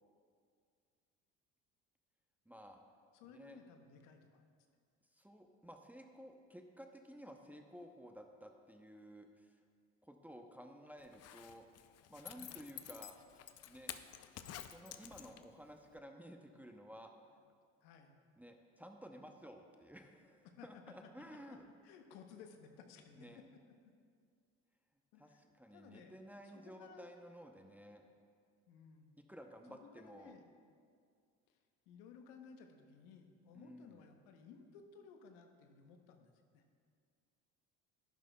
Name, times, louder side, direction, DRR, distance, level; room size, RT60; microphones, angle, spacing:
voice 1, 2.5-2.8 3.3-3.6 5.1-9.6 10.0-11.7 12.1-13.2 13.7-13.9 14.7-17.4 18.4-21.7 23.1-23.4 25.2-28.0 29.2-30.3 33.5-34.0, equal, 5° right, 4 dB, 0.7 m, -54 dB
voice 2, 3.1-4.4 12.3-12.6 17.8-18.1 20.4-20.9 21.5-21.6 21.8-23.4 23.8-23.9 25.1-25.4 25.7-26.1 26.5-27.1 28.7-29.1 29.7-30.5 31.5-31.6 31.9-36.6, left 6 dB, 85° left, 5 dB, 0.9 m, -58 dB
Zipper (clothing), 11.0-15.6 16.0-16.1, left 11 dB, 50° left, 0.5 m, -50 dB
10.5 x 10.5 x 2.3 m, 2.2 s
supercardioid pair, 80°, 34 cm